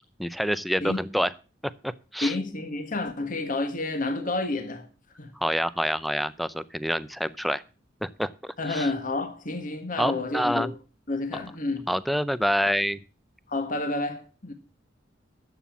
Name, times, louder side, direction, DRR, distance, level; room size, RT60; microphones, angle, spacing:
voice 1, 0.2-1.3 1.6-2.3 5.4-7.6 8.0-8.9 10.0-10.7 11.9-13.0, equal, ahead, 0.5 m, -27 dB
voice 2, 2.2-4.9 5.2-5.3 8.6-10.7 11.1-11.9 13.5-14.5, left 2 dB, 45° left, 1.6 m, -30 dB
11.0 x 7.4 x 7.3 m
head